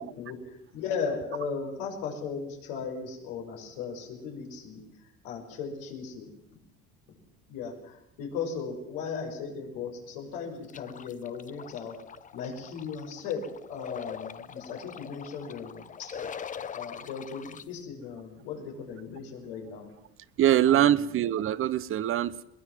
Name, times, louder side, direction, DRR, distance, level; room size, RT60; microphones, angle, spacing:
voice 1, 0.0-4.8 5.2-6.3 7.5-12.0 12.3-13.4 13.7-16.2 16.7-19.9 20.6-21.0, left 6 dB, 85° left, 2 dB, 6.1 m, -37 dB
sound 1, 10.7-17.6, left 7 dB, 25° left, 0.8 m, -42 dB
voice 2, 20.4-22.4, right 11 dB, 45° right, 16 dB, 1.0 m, -23 dB
22.0 x 20.5 x 7.5 m, 0.79 s
cardioid pair, 115°, 29 cm